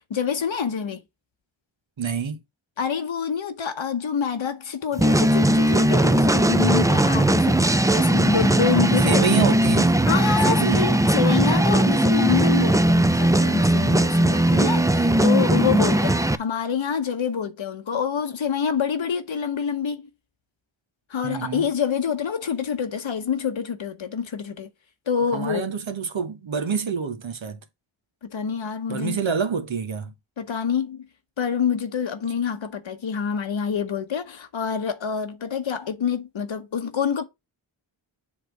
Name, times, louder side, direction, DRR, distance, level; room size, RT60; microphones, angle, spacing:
voice 1, 0.1-1.0 2.8-7.6 7.9-9.2 10.1-20.1 21.1-24.7 25.1-25.7 28.2-29.2 30.4-31.1 31.4-37.2, left 7 dB, 70° left, 1.0 m, -26 dB
voice 2, 2.0-2.4 9.1-9.9 10.5-10.9 21.2-21.7 25.3-27.6 28.9-30.1, right 6 dB, 70° right, 1.2 m, -26 dB
sound 1, 5.0-16.4, right 1 dB, 5° right, 0.5 m, -19 dB
7.4 x 3.3 x 4.5 m
cardioid pair, 45°, 48 cm